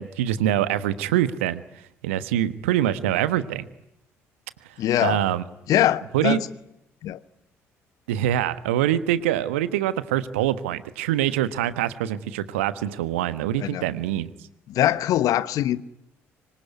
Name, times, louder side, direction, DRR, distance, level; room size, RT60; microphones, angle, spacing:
voice 1, 0.0-1.6 2.0-3.7 5.0-5.4 6.1-6.4 8.1-14.3, right 12 dB, 70° right, 1.2 m, -24 dB
voice 2, 4.8-5.2 5.7-6.5 7.0-7.2 13.6-13.8 14.7-15.8, left 12 dB, 55° left, 1.0 m, -22 dB
26.0 x 22.0 x 9.6 m
figure-of-eight pair, 50°, 7 cm